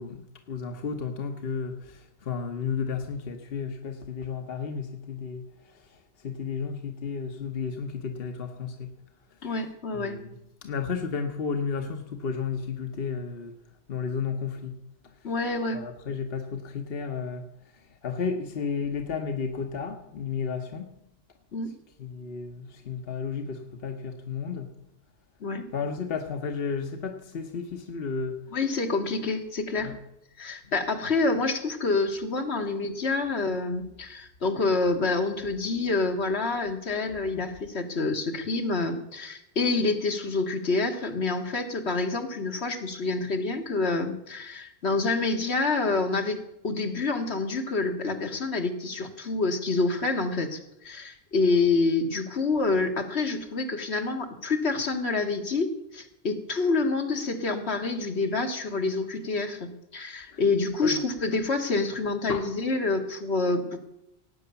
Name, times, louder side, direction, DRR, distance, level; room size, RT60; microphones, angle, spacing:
voice 1, 0.0-8.9 9.3-9.5 9.9-13.6 13.9-14.8 15.0-15.3 15.7-20.9 22.0-24.7 25.7-28.6 29.8-30.0 60.3-60.4 60.8-61.0 62.3-62.5, left 5 dB, 60° left, 5 dB, 1.3 m, -33 dB
voice 2, 9.4-10.2 15.2-15.8 21.5-21.7 25.4-25.7 28.5-29.9 30.4-63.8, left 3 dB, 75° left, 4 dB, 1.9 m, -27 dB
17.5 x 9.1 x 6.9 m, 0.84 s
omnidirectional pair, 1.1 m